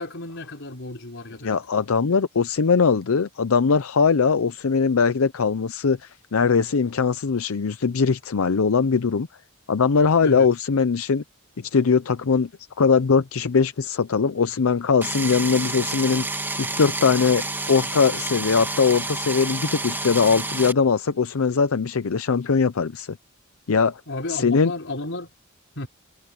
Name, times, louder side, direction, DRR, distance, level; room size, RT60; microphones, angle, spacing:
voice 1, 0.0-1.6 10.2-10.5 24.1-25.3 25.8-25.9, left 2 dB, 60° left, 4.9 m, -33 dB
voice 2, 1.4-9.3 9.7-11.2 11.6-12.5 12.8-16.3 16.6-23.2 23.7-24.0 24.3-24.7, left 5 dB, 85° left, 0.6 m, -21 dB
sound 1, 15.0-20.7, right 2 dB, 10° right, 2.3 m, -29 dB
head